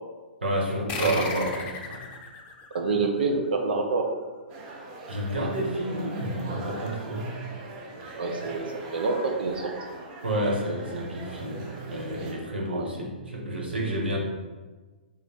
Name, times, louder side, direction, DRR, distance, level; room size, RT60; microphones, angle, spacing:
voice 1, 0.4-2.0 3.0-3.1 5.1-7.4 10.2-14.2, right 1 dB, 90° right, -1 dB, 1.1 m, -30 dB
sound 1, 0.9-3.9, left 4 dB, 25° left, 0.6 m, -36 dB
voice 2, 2.7-4.1 8.2-9.6 12.7-12.9, right 3 dB, 75° right, 3 dB, 0.8 m, -27 dB
sound 2, 4.5-12.3, right 2 dB, 45° right, 0.8 m, -41 dB
3.6 x 3.2 x 4.4 m, 1.3 s
hypercardioid pair, 125°, 6 cm